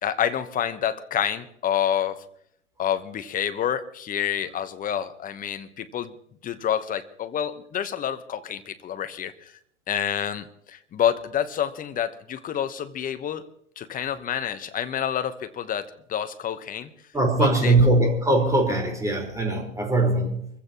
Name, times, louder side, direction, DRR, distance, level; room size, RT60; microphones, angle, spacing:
voice 1, 0.0-2.2 2.8-6.1 6.4-9.5 9.9-13.5 13.8-16.9 17.4-17.7, left 9 dB, 20° left, 10 dB, 1.1 m, -28 dB
voice 2, 17.1-20.5, right 2 dB, 10° right, 1 dB, 4.6 m, -21 dB
25.5 x 15.5 x 3.0 m, 0.70 s
figure-of-eight pair, 100°, 38 cm